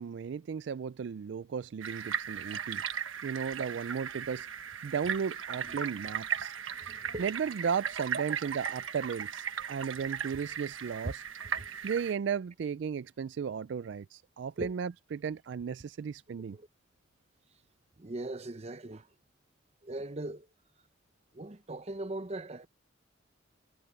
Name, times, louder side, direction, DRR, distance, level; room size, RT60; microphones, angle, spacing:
voice 1, 0.0-2.8 3.2-4.5 4.8-6.5 7.2-11.2 11.8-16.6, right 6 dB, 65° right, 0.3 m, -35 dB
sound 1, 1.8-12.1, right 8 dB, 90° right, 1.3 m, -37 dB
voice 2, 6.8-7.2 8.1-8.2 10.4-10.5 11.0-11.1 11.6-11.7 14.6-14.7 16.5-16.7 18.0-19.1 19.8-20.5 21.3-22.7, right 2 dB, 35° right, 0.8 m, -39 dB
head